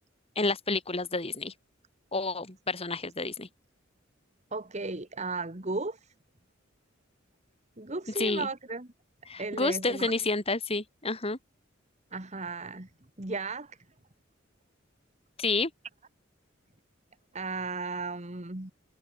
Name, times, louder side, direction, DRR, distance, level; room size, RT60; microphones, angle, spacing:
voice 1, 0.3-1.5 2.1-3.5 8.2-8.5 9.3-11.4 15.4-15.7, left 3 dB, 30° left, 3.2 m, -29 dB
voice 2, 4.5-6.1 7.8-8.9 9.4-10.1 12.1-12.9 13.2-13.8 17.3-18.7, right 3 dB, 35° right, 1.9 m, -35 dB
head